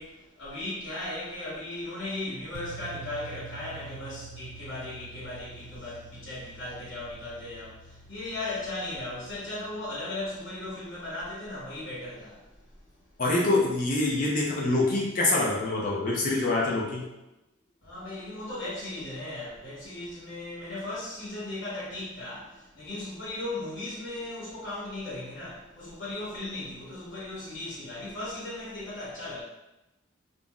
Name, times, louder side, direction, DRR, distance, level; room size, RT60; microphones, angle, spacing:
voice 1, 0.0-12.5 17.8-29.4, left 2 dB, 65° left, -9 dB, 1.1 m, -37 dB
sound 1, 2.5-10.7, right 4 dB, 85° right, 0.3 m, -47 dB
voice 2, 13.2-17.1, left 2 dB, 40° left, -3 dB, 0.4 m, -25 dB
2.5 x 2.0 x 3.5 m, 0.96 s
head